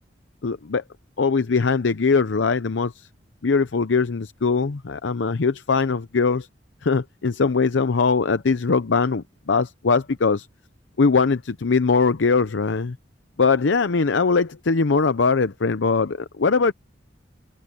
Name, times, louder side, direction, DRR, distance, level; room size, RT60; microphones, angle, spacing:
voice 1, 0.4-0.8 1.2-3.1 3.4-6.5 6.8-10.5 11.0-13.0 13.4-16.7, left 4 dB, 85° left, 0.7 m, -21 dB
head